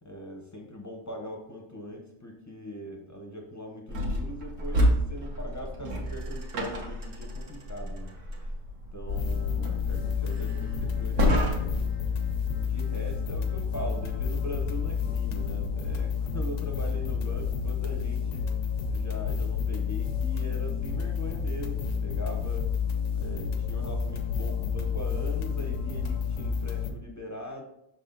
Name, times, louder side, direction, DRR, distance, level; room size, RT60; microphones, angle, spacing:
voice 1, 0.0-8.1 8.9-11.9 12.6-18.5 18.9-22.7 23.1-27.6, equal, 15° left, 2 dB, 0.7 m, -41 dB
sound 1, 3.9-11.9, equal, 70° right, 1.4 m, -30 dB
sound 2, 9.1-26.9, left 6 dB, 75° left, 1.1 m, -30 dB
6.1 x 4.2 x 3.9 m, 0.80 s
omnidirectional pair, 1.3 m